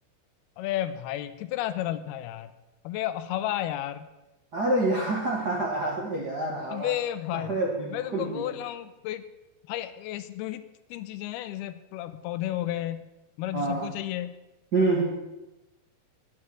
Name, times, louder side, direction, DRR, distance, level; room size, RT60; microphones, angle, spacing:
voice 1, 0.6-2.5 2.8-4.1 6.7-7.6 7.9-9.2 9.7-10.6 10.9-13.0 13.4-14.4, left 13 dB, 85° left, 12 dB, 2.6 m, -32 dB
voice 2, 4.5-6.9 7.3-8.5 13.5-13.9 14.7-15.0, right 2 dB, 55° right, -3 dB, 1.1 m, -27 dB
11.5 x 9.1 x 6.1 m, 1.0 s
omnidirectional pair, 4.5 m